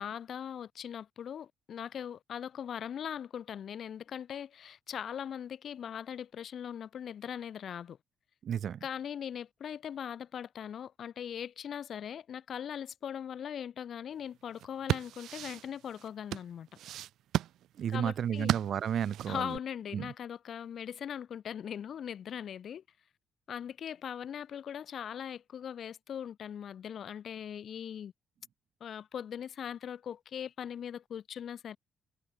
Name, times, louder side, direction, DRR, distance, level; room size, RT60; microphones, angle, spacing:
voice 1, 0.0-8.0 8.8-16.7 17.9-18.5 19.3-22.8 23.5-28.1 28.8-31.8, left 8 dB, 60° left, 6.7 m, -40 dB
voice 2, 8.4-8.8 17.8-19.6 19.9-20.1, right 9 dB, 60° right, 2.4 m, -32 dB
sound 1, 14.5-19.6, right 12 dB, 80° right, 1.5 m, -35 dB
cardioid pair, 90°, 0 cm